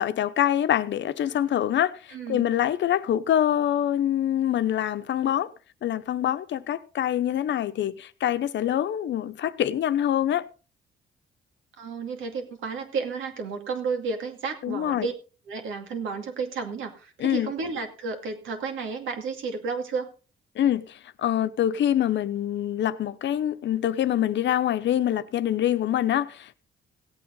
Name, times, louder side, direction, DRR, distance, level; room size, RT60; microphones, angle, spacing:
voice 1, 0.0-5.5 5.8-10.4 14.6-15.1 17.2-17.5 20.6-26.5, left 11 dB, 65° left, 0.9 m, -25 dB
voice 2, 2.1-2.5 11.8-15.1 15.5-20.1, right 5 dB, 80° right, 2.5 m, -32 dB
16.5 x 8.7 x 3.9 m
cardioid pair, 90°, 20 cm